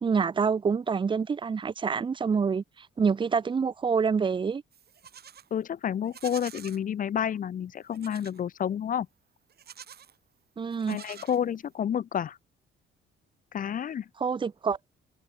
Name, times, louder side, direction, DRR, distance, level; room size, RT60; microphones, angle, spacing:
voice 1, 0.0-4.6 10.6-11.0 14.2-14.9, right 5 dB, 25° right, 0.5 m, -27 dB
Livestock farm animals working animals, 4.7-5.5 6.0-6.8 7.9-8.4 9.5-10.2 10.7-11.8, right 8 dB, 55° right, 2.2 m, -47 dB
voice 2, 5.5-9.1 10.9-12.4 13.5-14.1, left 9 dB, 45° left, 0.5 m, -30 dB
cardioid pair, 90°, 20 cm